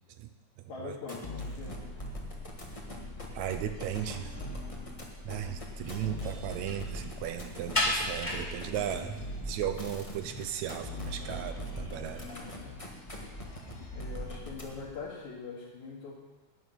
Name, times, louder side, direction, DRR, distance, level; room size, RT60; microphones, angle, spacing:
voice 1, 0.7-1.8 12.2-12.8 13.9-16.1, left 4 dB, 75° left, -5 dB, 3.3 m, -43 dB
sound 1, 1.0-15.0, left 1 dB, 55° left, 0.3 m, -41 dB
sound 2, 1.2-14.4, left 3 dB, 40° left, 2.1 m, -54 dB
voice 2, 3.4-4.3 5.2-9.1 9.5-12.3, right 10 dB, 75° right, 8 dB, 2.0 m, -36 dB
sound 3, 5.6-12.7, left 1 dB, 10° left, 1.8 m, -38 dB
11.0 x 6.3 x 8.9 m, 1.2 s
omnidirectional pair, 3.5 m